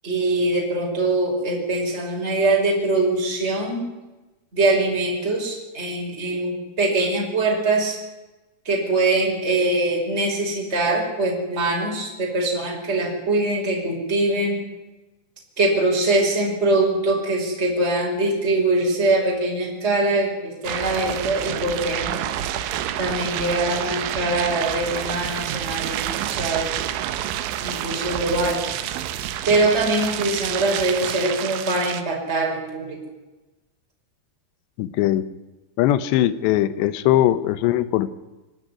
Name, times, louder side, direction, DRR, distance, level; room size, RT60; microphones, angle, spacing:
voice 1, 0.0-3.9 4.5-8.0 8.7-14.6 15.6-22.3 22.9-26.8 27.6-28.6 29.5-33.0, right 2 dB, 15° right, -1 dB, 5.2 m, -23 dB
sound 1, 20.6-32.0, right 11 dB, 80° right, 3.5 m, -28 dB
voice 2, 34.8-35.2 35.8-38.1, left 13 dB, 75° left, 15 dB, 3.0 m, -20 dB
25.5 x 12.0 x 9.8 m, 1.1 s
omnidirectional pair, 5.3 m